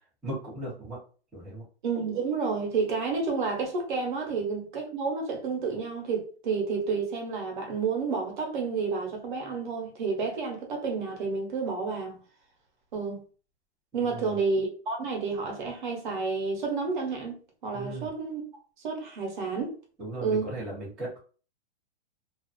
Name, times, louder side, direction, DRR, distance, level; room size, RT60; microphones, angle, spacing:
voice 1, 0.2-1.0 1.3-1.6 14.0-14.3 17.7-18.1 20.0-21.2, right 1 dB, 5° right, 0.5 m, -37 dB
voice 2, 1.8-12.2 12.9-13.2 13.9-18.4 18.8-19.8 20.2-20.5, right 4 dB, 45° right, 0.9 m, -30 dB
2.4 x 2.3 x 2.4 m
hypercardioid pair, 170°, 33 cm